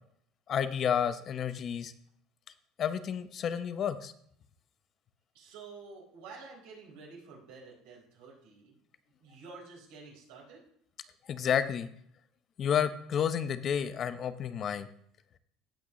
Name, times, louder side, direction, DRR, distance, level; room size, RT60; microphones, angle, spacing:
voice 1, 0.5-1.9 2.8-4.1 11.3-11.9 12.6-14.9, left 8 dB, 45° left, 12 dB, 0.7 m, -30 dB
voice 2, 5.3-8.7 9.2-10.6, right 4 dB, 80° right, -3 dB, 4.2 m, -50 dB
17.0 x 6.0 x 3.1 m, 0.67 s
supercardioid pair, 85°, 0 cm